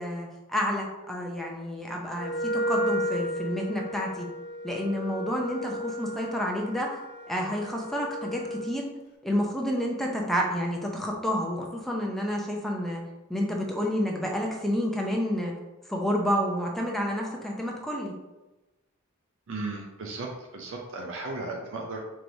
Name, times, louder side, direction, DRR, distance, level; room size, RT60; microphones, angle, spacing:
voice 1, 0.0-4.3 4.6-6.9 7.3-8.8 9.2-13.0 13.3-15.5 15.9-18.1, equal, ahead, -1 dB, 0.5 m, -29 dB
Wind instrument woodwind instrument, 2.1-8.8, equal, 50° left, 0.4 m, -33 dB
voice 2, 19.5-22.1, right 2 dB, 65° right, 1 dB, 0.5 m, -35 dB
4.6 x 3.0 x 2.6 m, 1.1 s
head